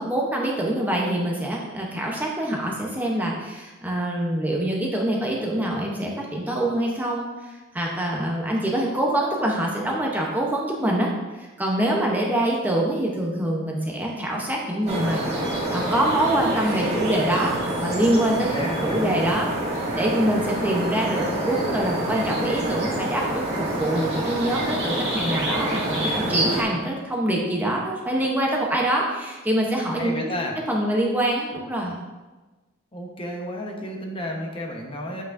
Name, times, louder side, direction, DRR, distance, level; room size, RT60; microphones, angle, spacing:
voice 1, 0.0-11.1 11.4-15.2 15.7-19.5 19.9-30.3 30.7-31.9, right 1 dB, 10° right, -2 dB, 0.7 m, -25 dB
sound 1, 14.9-26.6, right 1 dB, 30° right, 1.9 m, -27 dB
voice 2, 18.4-19.2 30.0-30.6 32.9-35.2, equal, 25° left, 0 dB, 1.0 m, -31 dB
8.1 x 5.9 x 2.5 m, 1.2 s
head